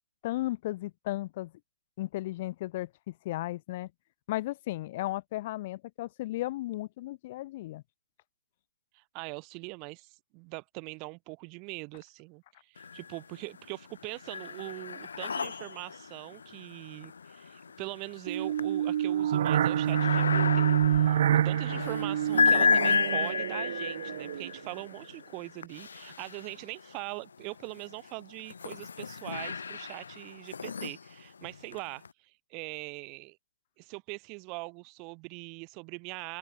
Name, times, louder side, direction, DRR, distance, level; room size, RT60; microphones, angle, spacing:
voice 1, 0.2-1.5 2.0-3.9 4.3-7.8, left 17 dB, 40° left, 3.7 m, -35 dB
voice 2, 8.9-33.4 33.8-36.4, right 32 dB, 30° right, 3.2 m, -42 dB
sound 1, 12.8-13.4 13.8-27.0 27.6-32.1, left 5 dB, 70° left, 1.4 m, -33 dB
sound 2, 18.3-24.7, right 10 dB, 50° right, 0.6 m, -27 dB
open air
hypercardioid pair, 140°, 0 cm